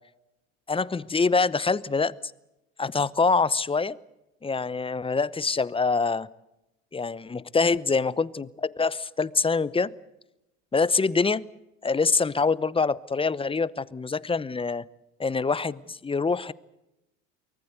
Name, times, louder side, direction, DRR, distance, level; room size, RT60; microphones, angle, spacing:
voice 1, 0.7-2.1 2.8-4.0 4.4-6.3 6.9-9.9 10.7-11.4 11.8-14.8 15.2-16.5, left 4 dB, 15° left, 20 dB, 0.8 m, -25 dB
23.5 x 19.5 x 8.1 m, 0.92 s
hypercardioid pair, 80°, 38 cm